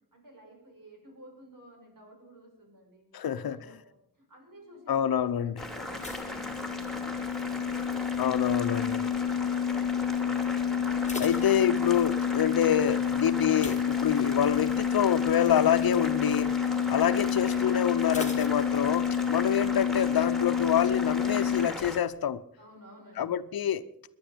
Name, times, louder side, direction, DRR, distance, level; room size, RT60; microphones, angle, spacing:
voice 1, 0.1-7.1 7.3-7.9 22.6-23.5, right 1 dB, 65° right, 1 dB, 5.9 m, -53 dB
voice 2, 3.1-3.6 4.9-5.6 8.2-9.0 11.2-16.5 16.9-22.4 23.2-23.8, left 9 dB, 80° left, 14 dB, 0.7 m, -27 dB
sound 1, 5.5-21.7, left 8 dB, 45° left, 0.6 m, -29 dB
Boiling, 5.6-22.0, left 1 dB, ahead, 2.4 m, -38 dB
sound 2, 5.9-7.4 7.7-8.2 8.8-9.2 9.5-9.6 10.0-10.1 10.7-12.2 13.5-14.7 15.0-15.3 15.7-15.8 18.1-19.3 19.6-19.7, left 2 dB, 20° left, 1.5 m, -43 dB
19.5 x 11.0 x 5.1 m, 0.79 s
wide cardioid pair, 80°, 35 cm